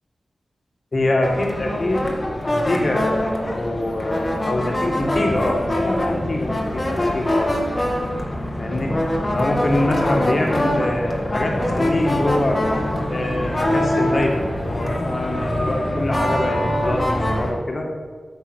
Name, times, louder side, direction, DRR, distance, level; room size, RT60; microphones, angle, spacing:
voice 1, 0.9-2.1 2.4-7.6 8.6-8.9 9.3-12.6 13.1-17.9, left 1 dB, 45° left, 1 dB, 2.1 m, -24 dB
sound 1, 1.2-17.5, left 1 dB, 25° left, 1.7 m, -23 dB
8.6 x 6.8 x 6.4 m, 1.5 s
cardioid pair, 70°, 0 cm